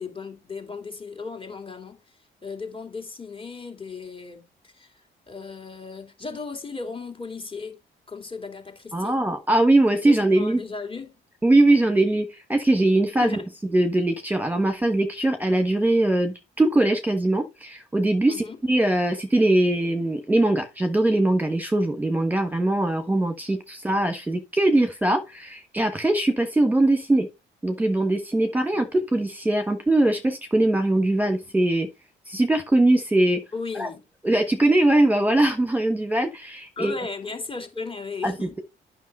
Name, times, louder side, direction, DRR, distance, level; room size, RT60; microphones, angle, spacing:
voice 1, 0.0-2.0 2.4-5.0 5.3-7.8 8.1-9.2 10.0-11.1 13.2-13.5 18.3-18.6 33.5-34.0 36.8-38.5, left 4 dB, 25° left, 2.9 m, -36 dB
voice 2, 8.9-10.6 11.4-13.4 13.7-27.3 27.6-31.9 32.3-33.4 33.7-33.9 34.2-36.9 38.2-38.6, right 1 dB, 10° right, 1.4 m, -21 dB
9.4 x 5.9 x 4.2 m
cardioid pair, 90°, 20 cm